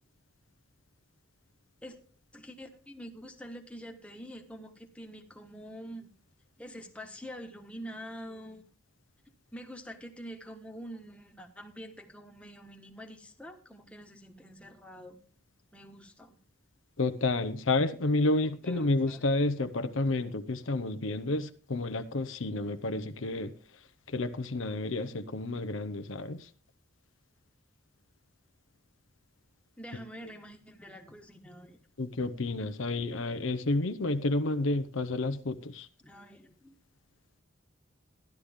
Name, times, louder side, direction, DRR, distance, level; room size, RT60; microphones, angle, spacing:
voice 1, 2.3-6.1 6.6-8.6 9.5-15.2 15.7-16.4 18.4-19.2 29.8-31.8 36.0-36.7, equal, 5° left, 1.4 m, -46 dB
voice 2, 17.0-23.5 24.1-26.4 32.0-35.9, left 2 dB, 75° left, 0.8 m, -30 dB
13.0 x 11.5 x 3.6 m
head